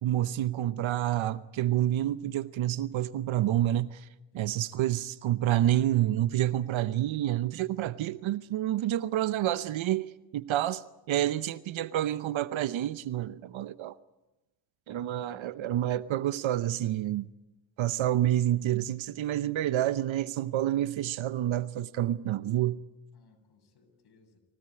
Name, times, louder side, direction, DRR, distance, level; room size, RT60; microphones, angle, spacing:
voice 1, 0.0-4.1 4.3-13.9 14.9-17.3 17.8-22.8, right 13 dB, 75° right, 0.9 m, -28 dB
voice 2, 15.0-15.5 23.1-24.4, left 4 dB, 55° left, 7.4 m, -63 dB
24.5 x 17.0 x 9.7 m
cardioid pair, 100°, 48 cm